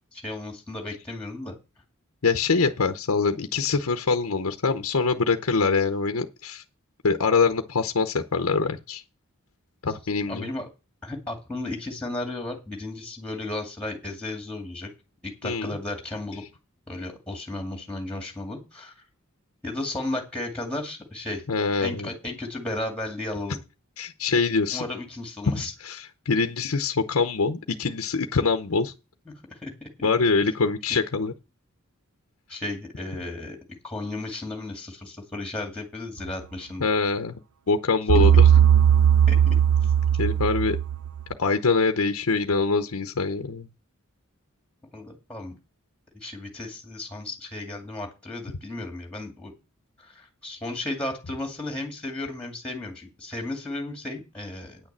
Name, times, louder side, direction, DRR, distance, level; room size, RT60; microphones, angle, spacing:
voice 1, 0.0-1.5 10.3-10.7 11.0-14.9 15.2-16.4 16.9-18.9 19.6-21.4 21.8-23.6 24.7-25.7 29.3-30.1 32.5-36.9 39.3-39.6 44.9-45.5 46.1-49.5 50.0-54.8, left 2 dB, 5° left, 2.2 m, -34 dB
voice 2, 2.2-6.6 7.0-9.0 9.8-10.5 15.4-15.7 21.5-22.1 24.0-24.8 25.5-28.9 30.0-31.3 36.8-37.4 37.7-38.5 40.2-40.8 41.4-43.7, left 4 dB, 75° left, 0.8 m, -24 dB
sound 1, 38.1-41.2, right 9 dB, 85° right, 0.6 m, -18 dB
9.3 x 6.5 x 7.3 m
head